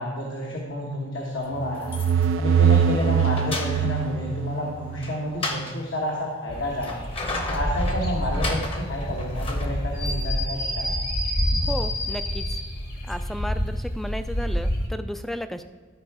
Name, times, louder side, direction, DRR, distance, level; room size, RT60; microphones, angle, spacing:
voice 1, 0.0-1.9 2.4-7.0 7.5-10.9, equal, 75° left, -2 dB, 1.2 m, -30 dB
sound 1, 1.6-5.2, right 7 dB, 90° right, 0.3 m, -22 dB
sound 2, 1.7-2.4 2.8-4.1 4.9-5.8 6.5-10.2, left 2 dB, 30° left, 0.8 m, -33 dB
sound 3, 6.5-14.9, equal, 50° left, 1.4 m, -28 dB
voice 2, 11.7-12.6 13.1-15.6, equal, ahead, 10 dB, 0.3 m, -33 dB
12.0 x 4.7 x 4.8 m, 1.4 s
head